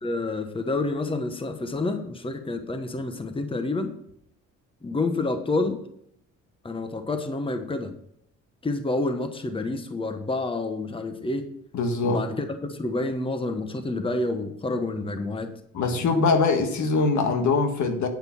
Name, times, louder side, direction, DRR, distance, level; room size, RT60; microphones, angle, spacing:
voice 1, 0.0-4.0 4.8-5.8 6.6-7.9 8.6-11.4 12.0-15.5, left 2 dB, 15° left, 7 dB, 1.1 m, -28 dB
voice 2, 11.7-12.2 15.7-18.1, left 4 dB, 70° left, 5 dB, 1.7 m, -22 dB
9.3 x 5.7 x 7.1 m, 0.72 s
cardioid pair, 90°, 30 cm